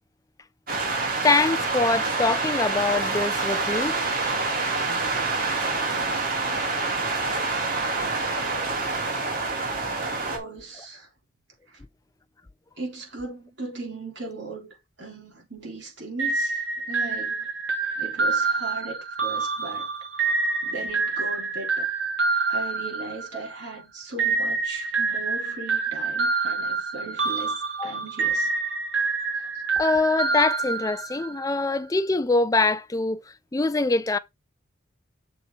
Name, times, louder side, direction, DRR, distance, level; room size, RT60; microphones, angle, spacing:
sound 1, 0.7-10.4, right 3 dB, 45° right, 2.3 m, -26 dB
voice 1, 1.2-4.0 27.8-27.9 29.8-33.2 33.5-34.2, left 3 dB, 15° left, 0.4 m, -23 dB
voice 2, 10.0-11.1 11.7-11.8 12.8-17.5 18.0-19.9 20.6-21.9 22.5-28.5, right 3 dB, 60° right, 3.5 m, -38 dB
sound 2, 16.2-23.6 24.2-31.4, right 4 dB, 75° right, 2.4 m, -27 dB
6.7 x 3.9 x 5.4 m
head